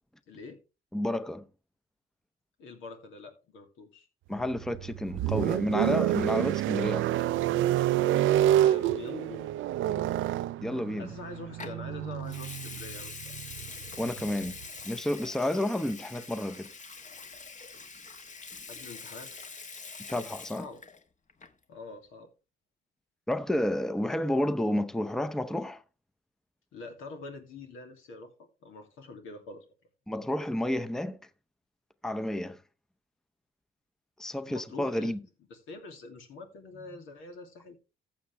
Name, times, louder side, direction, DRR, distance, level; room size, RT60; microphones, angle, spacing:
voice 1, 0.3-0.6 2.6-4.1 8.4-10.2 11.0-13.3 18.7-19.3 20.6-20.8 21.7-22.3 26.7-29.6 34.4-35.2 35.5-37.8, left 3 dB, 85° left, 2.7 m, -45 dB
voice 2, 0.9-1.4 4.3-7.1 10.6-11.1 14.0-14.6 14.8-16.7 20.0-20.7 23.3-25.8 30.1-31.2 32.0-32.6 34.2-35.2, left 1 dB, ahead, 0.7 m, -30 dB
sound 1, 4.4-14.6, right 13 dB, 80° right, 0.5 m, -28 dB
Water tap faucet / Sink (filling or washing) / Liquid, 11.6-11.8 12.3-21.0 21.3-21.6, left 4 dB, 40° left, 1.4 m, -44 dB
14.5 x 7.3 x 3.3 m
cardioid pair, 90°, 20 cm